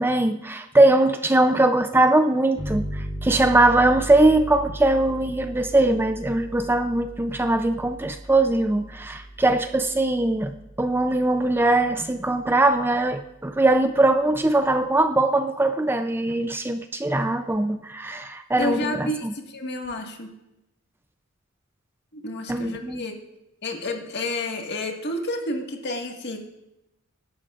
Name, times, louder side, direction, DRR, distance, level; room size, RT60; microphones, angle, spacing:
voice 1, 0.0-19.3 22.5-23.0, right 2 dB, 10° right, 8 dB, 0.4 m, -21 dB
sound 1, 2.6-11.9, equal, 30° right, 3.2 m, -37 dB
voice 2, 18.6-20.3 22.1-23.2 23.6-26.4, left 2 dB, 55° left, 2 dB, 1.7 m, -30 dB
22.5 x 11.5 x 2.5 m, 0.91 s
head